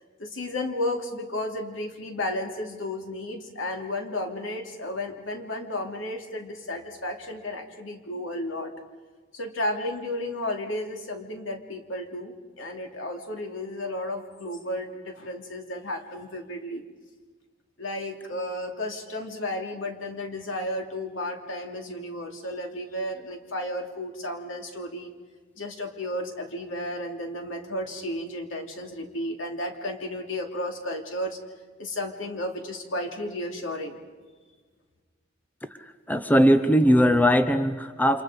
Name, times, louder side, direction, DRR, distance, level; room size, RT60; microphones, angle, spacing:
voice 1, 0.2-8.7 9.3-16.8 17.8-25.1 25.6-31.4 31.8-34.0, left 1 dB, 85° left, 3 dB, 3.0 m, -33 dB
voice 2, 35.8-38.2, equal, 10° left, 10 dB, 0.8 m, -20 dB
29.5 x 26.5 x 5.1 m, 1.4 s
head